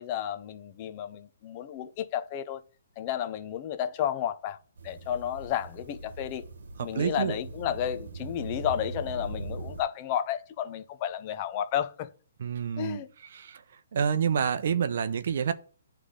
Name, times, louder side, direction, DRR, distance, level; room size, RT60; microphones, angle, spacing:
voice 1, 0.0-2.6 3.0-4.6 4.8-6.4 6.8-12.1 12.8-13.1, left 10 dB, 30° left, 0.6 m, -32 dB
sound 1, 4.8-9.8, right 3 dB, 80° right, 1.1 m, -40 dB
voice 2, 6.8-7.4 12.4-13.0 13.3-13.6 13.9-15.5, right 7 dB, 60° right, 0.5 m, -28 dB
9.8 x 3.3 x 3.7 m
hypercardioid pair, 160°, 0 cm